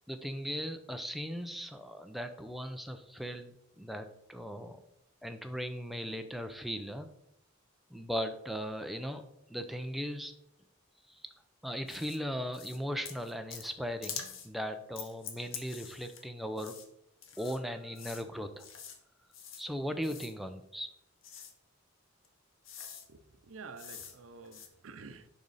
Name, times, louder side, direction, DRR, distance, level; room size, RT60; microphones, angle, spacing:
voice 1, 0.1-4.8 5.2-7.1 7.9-10.3 11.1-11.2 11.6-16.7 17.4-18.7 19.6-20.9, equal, ahead, 6 dB, 0.5 m, -38 dB
sound 1, 11.9-12.2 12.5-12.8 13.0-13.7 14.0-14.5 15.0-16.2 16.6-16.9 17.2-17.6 18.0-18.2 18.6-19.0 19.3-19.6 20.0-20.3 21.2-21.5 22.2-22.3 22.7-23.1 23.8-24.2 24.5-24.7, left 7 dB, 70° left, 1.0 m, -45 dB
voice 2, 23.1-25.3, right 4 dB, 90° right, 11 dB, 0.6 m, -49 dB
6.8 x 5.0 x 4.1 m, 0.78 s
head